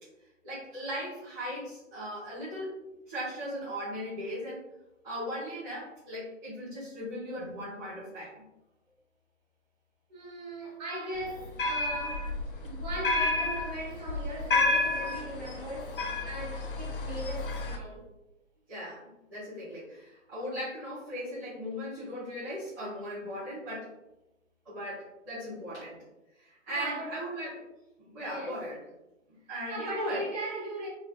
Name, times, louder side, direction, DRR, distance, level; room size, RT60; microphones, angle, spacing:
voice 1, 0.4-2.7 3.1-4.6 5.0-8.3 18.7-23.9 24.6-26.0 26.4-27.6 28.0-28.8 29.5-30.2, equal, 15° right, 0.7 m, -38 dB
voice 2, 10.1-12.3 12.6-16.0 16.2-18.0 26.7-27.2 28.3-28.6 29.7-30.9, right 1 dB, 35° right, 1.1 m, -39 dB
sound 1, 11.2-17.8, left 2 dB, 45° left, 0.4 m, -31 dB
3.3 x 2.2 x 2.3 m
figure-of-eight pair, 135°, 39 cm